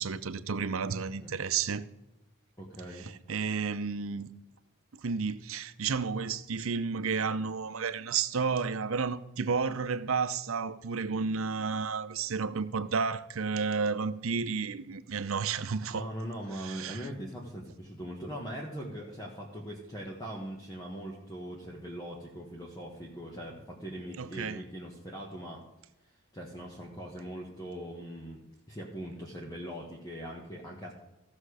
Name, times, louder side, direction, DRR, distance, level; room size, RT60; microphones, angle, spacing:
voice 1, 0.0-1.8 2.9-4.3 5.0-16.1 16.5-17.1 24.2-24.6, right 5 dB, 80° right, 0.7 m, -32 dB
voice 2, 2.6-3.1 15.9-25.7 26.0-28.4 28.7-30.9, equal, 15° left, 1.3 m, -41 dB
15.5 x 6.5 x 4.9 m
head